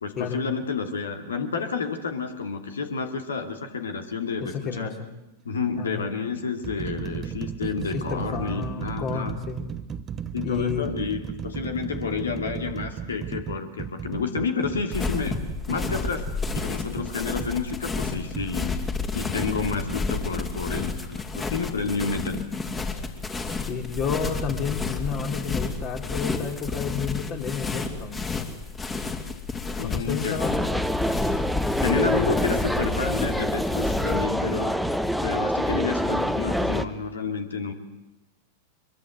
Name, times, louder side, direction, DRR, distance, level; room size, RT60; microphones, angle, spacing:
voice 1, 0.0-4.9 5.4-9.3 10.3-15.3 15.7-18.8 19.1-22.4 29.8-30.4 31.8-34.8 35.2-37.7, left 5 dB, 75° left, 6 dB, 2.8 m, -30 dB
sound 1, 4.3-4.6 5.5-5.6 6.3-17.6 18.4-18.5, right 8 dB, 30° right, 1.0 m, -35 dB
voice 2, 4.4-5.1 5.8-6.1 7.9-9.7 10.4-10.9 23.7-28.3 29.8-30.7 32.0-32.3, left 6 dB, 40° left, 3 dB, 3.8 m, -31 dB
sound 2, 14.9-34.2, left 4 dB, 20° left, 2.9 m, -31 dB
sound 3, 30.4-36.8, equal, ahead, 1.3 m, -26 dB
24.0 x 22.5 x 7.9 m, 0.97 s
figure-of-eight pair, 95°, 0 cm